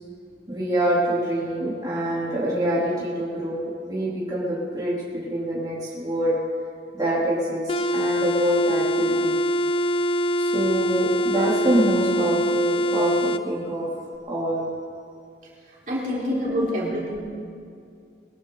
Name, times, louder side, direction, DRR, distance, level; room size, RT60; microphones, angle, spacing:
voice 1, 0.5-5.0 5.2-6.4 6.9-9.3 10.4-13.9 14.3-14.7 16.3-16.7, right 1 dB, 20° right, -8 dB, 3.2 m, -25 dB
sound 1, 7.7-13.4, equal, 30° left, 0.5 m, -23 dB
voice 2, 15.9-17.2, equal, 50° right, -5 dB, 3.8 m, -27 dB
22.5 x 13.5 x 3.9 m, 2.3 s
head